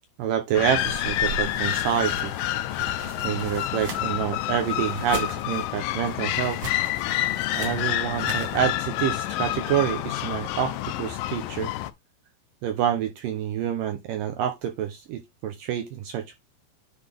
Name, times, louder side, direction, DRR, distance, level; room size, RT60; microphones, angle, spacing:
voice 1, 0.2-2.3 3.2-6.6 7.5-11.7 12.6-16.4, right 10 dB, 75° right, 2.0 m, -27 dB
sound 1, 0.5-11.9, left 14 dB, 85° left, 2.0 m, -28 dB
sound 2, 0.8-8.7, right 3 dB, 45° right, 2.6 m, -39 dB
10.0 x 3.9 x 3.5 m
omnidirectional pair, 4.8 m